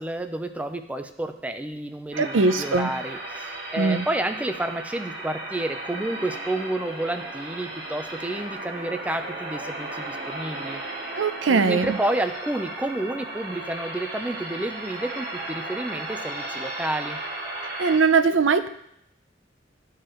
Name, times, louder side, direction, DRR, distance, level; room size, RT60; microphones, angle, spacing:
voice 1, 0.0-10.8 11.5-17.2, right 1 dB, 10° right, 7 dB, 0.4 m, -30 dB
sound 1, 2.1-18.0, right 2 dB, 50° right, 2.3 m, -35 dB
voice 2, 2.2-2.9 3.8-4.0 11.1-12.0 17.8-18.7, right 4 dB, 90° right, 10 dB, 0.5 m, -21 dB
12.5 x 4.8 x 3.0 m, 0.74 s
head